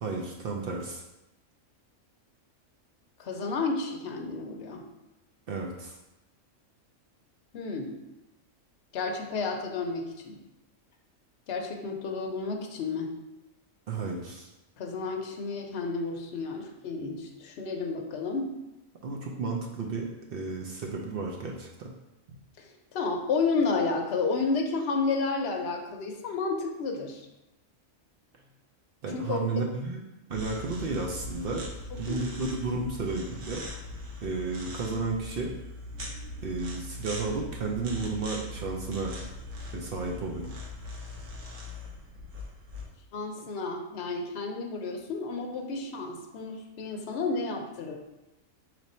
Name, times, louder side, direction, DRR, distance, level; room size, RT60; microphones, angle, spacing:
voice 1, 0.0-1.0 5.5-5.9 13.9-14.5 19.0-21.9 29.0-30.0 30.3-31.6 32.0-33.6 34.2-35.5 36.4-39.1 39.7-40.5, right 3 dB, 60° right, 0 dB, 0.6 m, -32 dB
voice 2, 3.2-4.8 7.5-8.0 8.9-10.4 11.5-13.1 14.8-18.6 22.6-27.3 29.1-29.5 32.1-32.3 35.9-36.6 43.1-48.0, left 4 dB, 60° left, 2 dB, 0.8 m, -31 dB
sound 1, 30.3-42.8, left 1 dB, 90° right, 1.3 m, -40 dB
4.6 x 2.6 x 4.2 m, 0.96 s
omnidirectional pair, 1.3 m